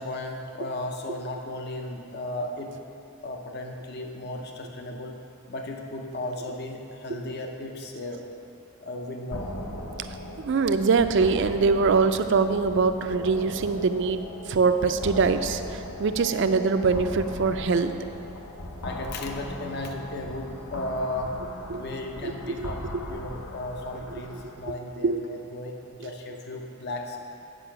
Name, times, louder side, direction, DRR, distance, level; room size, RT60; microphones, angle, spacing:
voice 1, 0.0-2.7 3.2-5.2 5.5-8.2 8.8-9.5 18.8-21.3 21.7-22.8 23.1-27.3, left 1 dB, 45° left, 3 dB, 0.6 m, -35 dB
sound 1, 9.3-24.6, left 1 dB, 80° left, 0.9 m, -38 dB
voice 2, 10.4-14.2 14.5-17.9 21.7-21.8 22.2-22.7 25.0-25.2, right 4 dB, 55° right, 9 dB, 0.4 m, -23 dB
8.4 x 5.4 x 5.9 m, 2.8 s
head